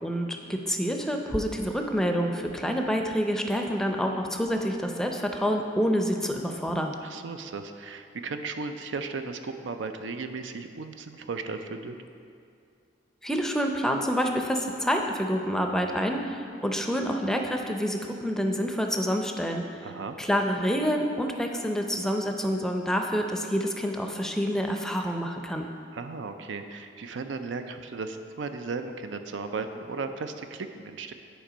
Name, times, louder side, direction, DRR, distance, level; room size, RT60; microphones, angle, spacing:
voice 1, 0.0-6.9 13.2-19.6 20.2-25.7, equal, 5° left, 3 dB, 0.5 m, -27 dB
voice 2, 7.0-11.9 19.8-20.2 25.9-31.1, right 4 dB, 75° right, 7 dB, 0.5 m, -36 dB
10.0 x 4.4 x 5.0 m, 2.5 s
head